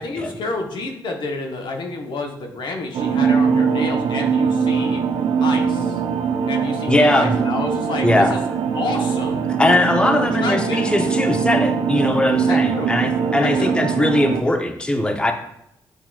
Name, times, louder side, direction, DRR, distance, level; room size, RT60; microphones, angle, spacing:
voice 1, 0.0-5.0 5.4-6.0 6.5-8.4 8.7-9.5 10.4-10.9 12.5-12.9 13.4-13.7, left 3 dB, 65° left, 2 dB, 0.8 m, -29 dB
sound 1, 2.9-14.4, right 6 dB, 75° right, 0.4 m, -21 dB
voice 2, 6.9-7.3 8.0-8.4 9.6-15.3, left 1 dB, 10° left, 4 dB, 0.6 m, -19 dB
8.2 x 2.9 x 2.2 m, 0.79 s
supercardioid pair, 60°, 8 cm